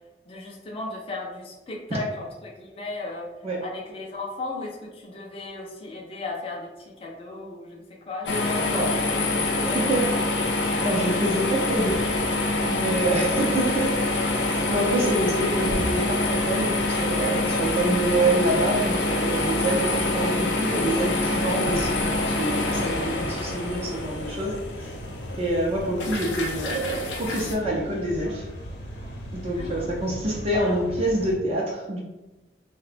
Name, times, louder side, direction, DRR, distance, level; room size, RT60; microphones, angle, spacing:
voice 1, 0.3-3.3 3.6-10.1 29.6-29.9 30.5-30.8, left 2 dB, 35° left, -1 dB, 0.4 m, -36 dB
sound 1, 8.3-27.5, left 2 dB, 85° left, 0.4 m, -26 dB
voice 2, 9.6-10.0 10.8-12.3 12.6-13.9 14.4-24.9 25.3-28.5 29.3-32.0, right 1 dB, 35° right, -3 dB, 0.4 m, -26 dB
Bus, 11.6-24.0, right 1 dB, 85° right, 0.5 m, -38 dB
sound 2, 22.5-31.4, equal, 70° left, 0.8 m, -38 dB
3.6 x 2.1 x 2.5 m, 1.1 s
head